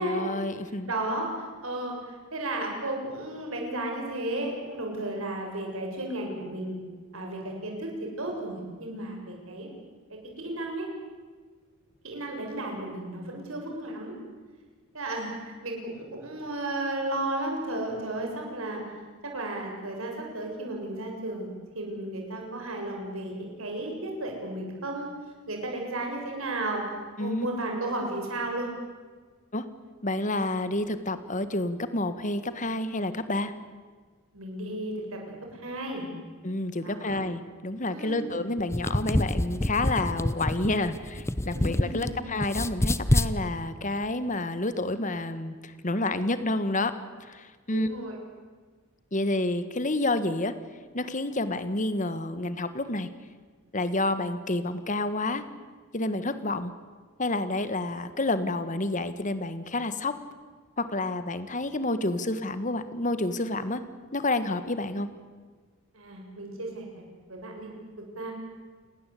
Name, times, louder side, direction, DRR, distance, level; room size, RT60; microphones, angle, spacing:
voice 1, 0.0-0.9 27.2-27.5 29.5-29.7 30.0-33.5 36.4-46.9 47.2-47.9 49.1-50.5 50.9-53.1 53.7-55.4 55.9-56.7 57.2-60.2 60.8-63.8 64.1-65.1, left 2 dB, 35° left, 12 dB, 1.6 m, -29 dB
voice 2, 0.8-6.8 7.1-9.7 10.1-10.9 12.0-14.1 14.9-18.8 19.2-21.5 21.8-25.1 25.5-26.8 27.2-28.7 34.3-35.2 35.5-36.1 36.8-37.2 37.9-38.3 41.5-42.2 47.7-48.2 65.9-66.9 67.3-67.7 68.1-68.3, right 1 dB, 70° right, 1 dB, 7.2 m, -34 dB
sound 1, 38.6-42.1 42.4-43.3, left 1 dB, 15° left, 0.7 m, -26 dB
29.0 x 19.5 x 8.5 m, 1.5 s
head